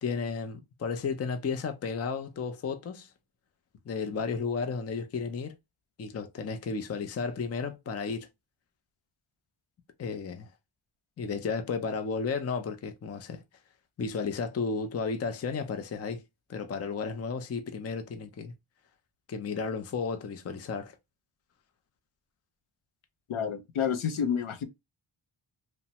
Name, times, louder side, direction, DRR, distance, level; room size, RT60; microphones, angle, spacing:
voice 1, 0.0-3.1 3.9-5.5 6.0-8.3 10.0-10.5 11.2-13.4 14.0-16.2 16.5-18.5 19.3-21.0, left 5 dB, 35° left, 0.4 m, -33 dB
voice 2, 23.3-24.7, left 7 dB, 75° left, 0.6 m, -29 dB
3.1 x 2.0 x 2.7 m
wide cardioid pair, 150°, 49 cm